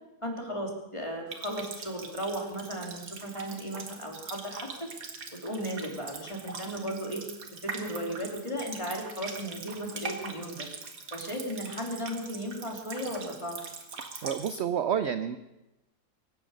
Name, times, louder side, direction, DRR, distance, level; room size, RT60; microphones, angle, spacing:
voice 1, 0.2-4.9 5.3-7.2 7.6-10.7 11.1-13.6, equal, 20° left, 1 dB, 2.9 m, -35 dB
Water tap faucet, 1.3-14.6, right 4 dB, 85° right, 2.3 m, -42 dB
voice 2, 14.2-15.4, right 8 dB, 60° right, 10 dB, 0.7 m, -29 dB
23.5 x 9.6 x 6.4 m, 1.0 s
omnidirectional pair, 1.7 m